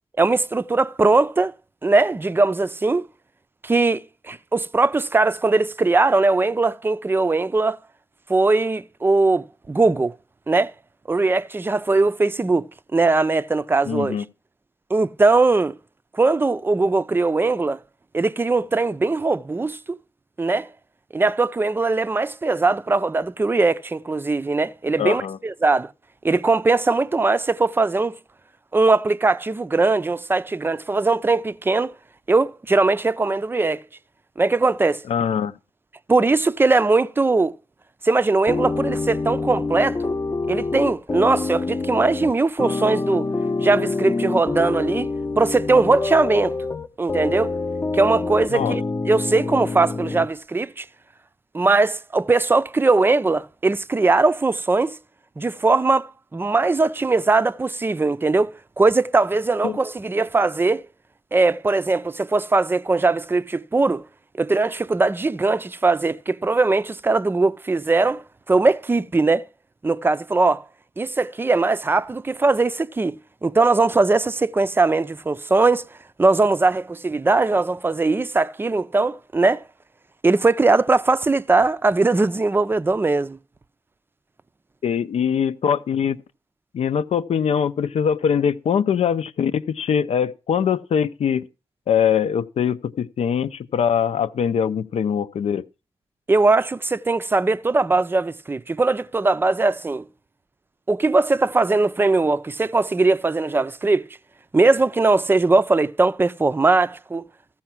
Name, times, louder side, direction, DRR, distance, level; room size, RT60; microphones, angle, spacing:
voice 1, 0.2-1.5 1.8-3.1 3.6-7.8 8.3-10.1 10.5-10.7 11.1-14.2 14.9-15.8 16.1-17.8 18.1-20.0 20.4-20.7 21.1-25.9 26.2-28.2 28.7-31.9 32.3-33.8 34.4-35.0 36.1-37.5 38.0-40.0 40.5-43.3 43.6-45.1 45.4-46.6 47.0-47.5 47.9-50.9 51.5-55.0 55.4-60.9 61.3-64.0 64.4-69.4 69.8-70.6 71.0-75.8 76.2-79.6 80.2-83.4 96.3-100.0 100.9-104.1 104.5-107.3, right 3 dB, 20° right, 0.5 m, -20 dB
voice 2, 13.8-14.3 25.0-25.4 35.1-35.5 48.5-48.8 59.6-59.8 84.8-86.2 86.7-91.5 91.9-95.7, left 7 dB, 75° left, 0.6 m, -22 dB
sound 1, 38.5-50.3, left 3 dB, 25° left, 0.7 m, -26 dB
14.5 x 5.7 x 5.9 m
wide cardioid pair, 105°, 11 cm